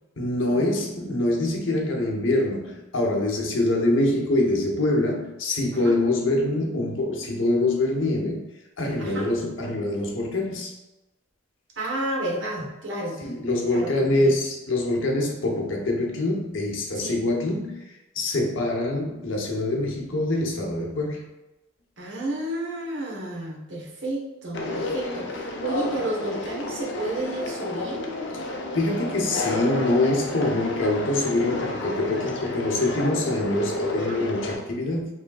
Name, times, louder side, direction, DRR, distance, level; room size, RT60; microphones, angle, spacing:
voice 1, 0.2-8.4 8.8-10.7 13.2-17.9 18.1-21.3 28.7-35.1, left 2 dB, 90° left, 0 dB, 0.9 m, -25 dB
voice 2, 11.8-13.2 13.7-14.4 17.0-17.2 22.0-28.0 34.0-34.3, right 1 dB, 70° right, -3 dB, 1.1 m, -31 dB
Conversation, 24.5-34.6, left 2 dB, 65° left, 0.6 m, -31 dB
5.0 x 3.2 x 2.3 m, 1.0 s
head